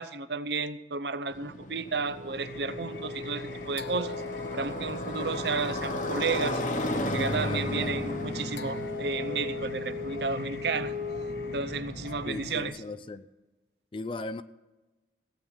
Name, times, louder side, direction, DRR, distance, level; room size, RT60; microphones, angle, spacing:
voice 1, 0.0-4.2 4.5-6.6 7.0-10.9 11.4-12.7, right 4 dB, 65° right, 0.7 m, -32 dB
Motorcycle, 1.3-12.7, left 1 dB, 45° left, 1.1 m, -36 dB
Wind instrument woodwind instrument, 2.0-11.8, left 3 dB, 45° right, 1.4 m, -38 dB
Singing, 2.4-12.7, left 2 dB, 70° left, 0.9 m, -44 dB
voice 2, 7.4-8.0 12.3-13.3 13.9-14.4, left 3 dB, 30° left, 0.4 m, -37 dB
16.5 x 8.8 x 6.4 m
head